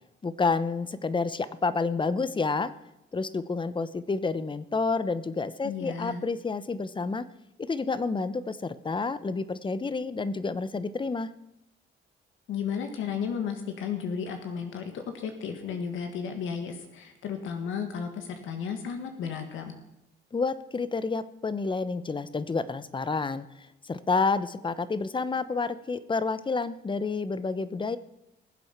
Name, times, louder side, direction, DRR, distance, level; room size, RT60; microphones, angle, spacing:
voice 1, 0.2-2.7 3.1-7.3 7.6-11.3 20.3-28.0, left 4 dB, 25° left, 15 dB, 0.9 m, -29 dB
voice 2, 5.6-6.2 12.5-19.7, left 6 dB, 80° left, 5 dB, 1.8 m, -33 dB
20.5 x 7.8 x 5.9 m, 0.88 s
cardioid pair, 90°, 20 cm